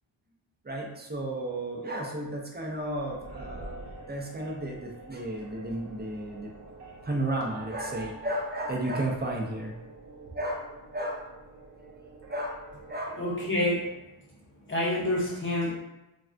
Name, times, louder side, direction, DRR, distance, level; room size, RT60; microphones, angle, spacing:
voice 1, 0.6-3.7 4.0-6.5 7.0-9.8 10.3-11.3 12.3-13.2, right 1 dB, 20° right, -1 dB, 0.4 m, -33 dB
sound 1, 2.6-13.9, right 2 dB, 60° right, 0.7 m, -47 dB
voice 2, 13.2-13.9 14.7-15.7, left 1 dB, 25° left, -5 dB, 0.7 m, -27 dB
3.3 x 2.2 x 2.5 m, 0.96 s
wide cardioid pair, 130°, 47 cm